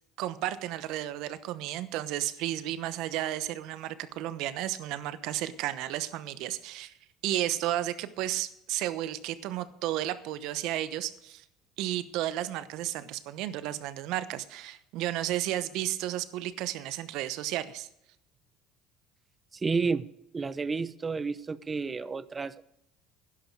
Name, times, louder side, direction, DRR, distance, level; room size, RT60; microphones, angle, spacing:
voice 1, 0.2-6.9 7.2-11.4 11.8-17.9, right 13 dB, 70° right, 13 dB, 0.9 m, -33 dB
voice 2, 19.5-20.1 20.3-22.6, right 4 dB, 25° right, 16 dB, 0.7 m, -31 dB
11.5 x 11.0 x 4.7 m, 0.77 s
supercardioid pair, 90°, 0 cm